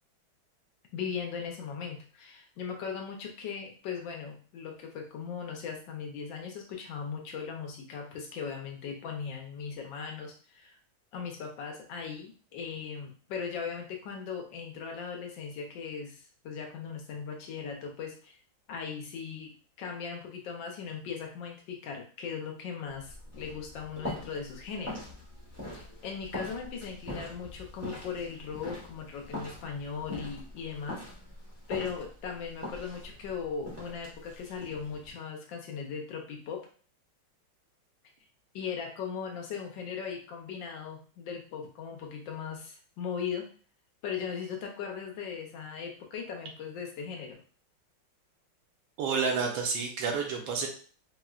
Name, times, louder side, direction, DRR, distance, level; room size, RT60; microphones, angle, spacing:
voice 1, 0.9-10.8 11.1-18.4 18.7-25.1 25.7-31.0 31.7-36.6 38.5-43.4 44.0-47.4, left 6 dB, 75° left, 1 dB, 1.3 m, -38 dB
sound 1, 22.9-35.1, left 1 dB, 25° right, 0.3 m, -43 dB
voice 2, 49.0-50.7, right 5 dB, 75° right, 1 dB, 1.4 m, -29 dB
4.1 x 2.0 x 2.3 m, 0.42 s
omnidirectional pair, 2.2 m